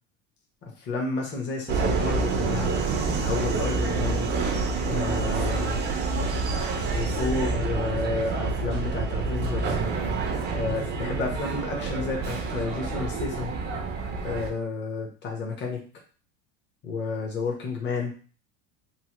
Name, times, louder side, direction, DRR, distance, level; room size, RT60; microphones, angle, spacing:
voice 1, 0.8-2.7 3.2-4.2 4.8-5.8 6.9-9.8 10.5-13.5 14.2-15.8 16.8-18.1, left 4 dB, 30° left, 0 dB, 0.9 m, -31 dB
Subway metro underground, 1.7-14.5, right 4 dB, 30° right, 0.5 m, -27 dB
3.0 x 2.1 x 2.9 m, 0.38 s
supercardioid pair, 125°, 34 cm